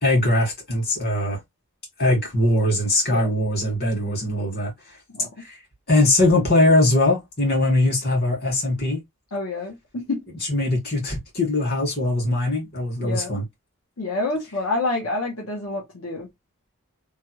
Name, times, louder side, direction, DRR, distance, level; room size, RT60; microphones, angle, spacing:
voice 1, 0.0-1.4 2.0-4.7 5.4-5.6 5.9-9.0 10.5-13.4, left 1 dB, 45° left, 1.9 m, -21 dB
voice 2, 9.3-10.2 13.0-13.4 14.0-16.3, left 2 dB, 80° left, 1.0 m, -28 dB
3.2 x 2.3 x 3.0 m
head